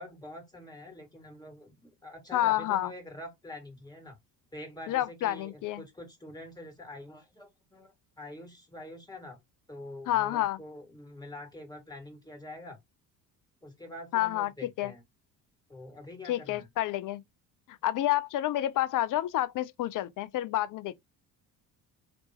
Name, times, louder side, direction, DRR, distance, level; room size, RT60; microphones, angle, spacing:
voice 1, 0.0-4.2 4.5-9.4 9.7-12.8 13.6-15.0 15.7-16.7, left 1 dB, 10° left, 2.3 m, -45 dB
voice 2, 2.3-2.9 4.9-5.8 10.1-10.6 14.1-14.9 16.3-17.2 17.7-20.9, left 14 dB, 40° left, 0.6 m, -29 dB
3.4 x 3.0 x 2.9 m
hypercardioid pair, 55°, 49 cm